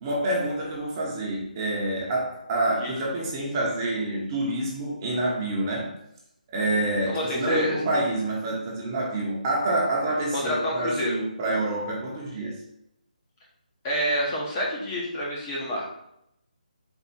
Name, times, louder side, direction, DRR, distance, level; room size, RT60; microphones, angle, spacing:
voice 1, 0.0-5.9 6.5-12.6, right 1 dB, 25° right, -3 dB, 1.0 m, -27 dB
voice 2, 7.1-7.8 10.3-11.2 13.8-15.9, equal, 25° left, -4 dB, 1.1 m, -27 dB
4.4 x 2.6 x 4.4 m, 0.78 s
figure-of-eight pair, 160°, 5 cm